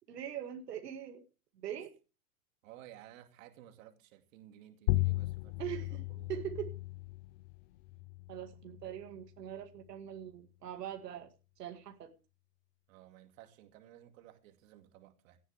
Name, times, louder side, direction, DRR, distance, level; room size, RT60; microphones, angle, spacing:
voice 1, 0.1-1.2 1.6-1.9 5.6-6.0 6.3-6.7 8.3-11.3 11.6-12.1, right 10 dB, 85° right, 2.2 m, -42 dB
voice 2, 2.6-5.8 6.1-6.4 12.9-15.4, right 12 dB, 55° right, 2.5 m, -56 dB
sound 1, 4.9-9.9, left 18 dB, 40° left, 0.6 m, -37 dB
17.5 x 12.0 x 3.5 m
hypercardioid pair, 135°, 47 cm